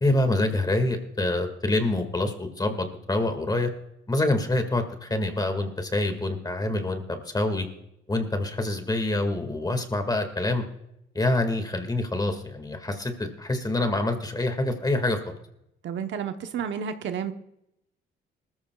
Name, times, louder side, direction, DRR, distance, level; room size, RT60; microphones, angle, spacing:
voice 1, 0.0-3.7 4.1-7.7 8.1-10.6 11.2-15.4, left 2 dB, 20° left, 7 dB, 1.9 m, -26 dB
voice 2, 15.8-17.3, right 7 dB, 70° right, 7 dB, 1.0 m, -31 dB
19.5 x 14.0 x 2.4 m, 0.83 s
cardioid pair, 90°, 20 cm